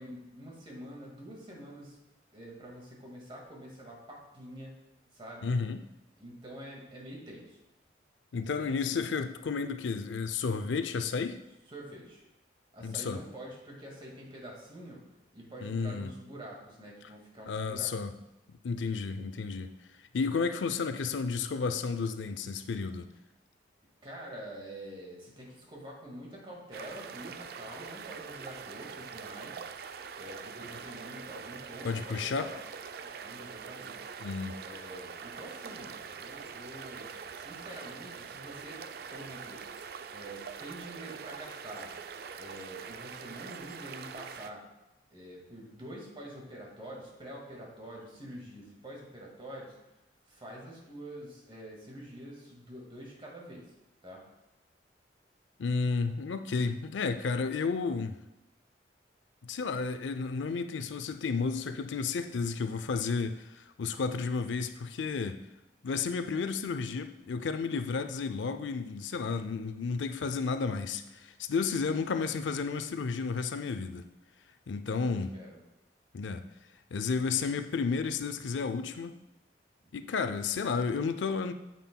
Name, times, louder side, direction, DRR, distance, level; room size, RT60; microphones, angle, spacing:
voice 1, 0.0-2.0 2.3-4.8 5.1-5.5 6.2-7.6 8.5-9.1 11.7-12.2 12.7-15.0 15.3-18.2 24.0-29.6 30.1-32.6 33.0-34.1 34.6-38.8 39.1-39.6 40.1-41.9 42.4-44.6 45.1-49.8 50.3-53.7 54.0-54.2 74.9-75.6, right 1 dB, 30° right, -2 dB, 1.8 m, -46 dB
voice 2, 5.4-5.8 8.3-11.4 12.8-13.2 15.6-16.1 17.5-18.2 18.5-19.7 20.1-23.1 31.8-32.5 34.2-34.6 55.6-58.1 59.4-65.4 65.8-74.0 74.7-75.3 76.1-76.4 76.9-79.1 79.9-81.5, left 5 dB, 90° left, 9 dB, 0.5 m, -32 dB
sound 1, 26.7-44.5, right 6 dB, 55° right, 0.4 m, -44 dB
9.0 x 7.5 x 2.2 m, 0.94 s
head